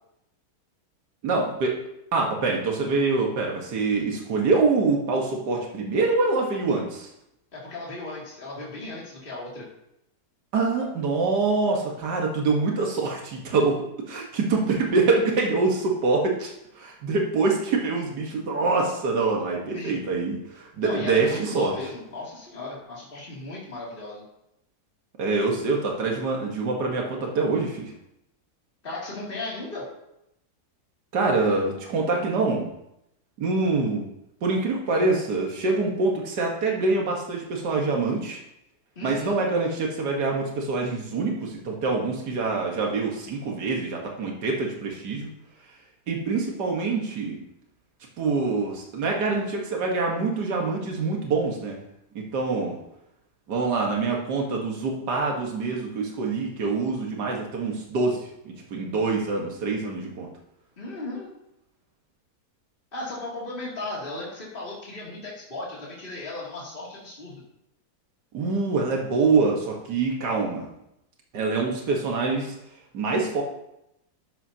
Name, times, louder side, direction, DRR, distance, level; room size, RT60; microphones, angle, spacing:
voice 1, 1.2-1.8 2.1-7.1 10.5-21.7 25.2-27.9 31.1-32.7 33.4-34.0 34.4-38.4 39.0-45.3 46.1-47.4 48.2-51.8 52.2-52.8 53.5-60.3 68.3-70.7 71.3-72.6 72.9-73.4, right 3 dB, 85° right, 0 dB, 2.0 m, -25 dB
voice 2, 7.5-9.6 19.7-19.9 20.8-24.2 28.8-29.9 39.0-39.4 60.8-61.3 62.9-67.4, left 2 dB, 30° left, -6 dB, 2.8 m, -36 dB
12.5 x 11.0 x 2.8 m, 0.83 s
omnidirectional pair, 1.7 m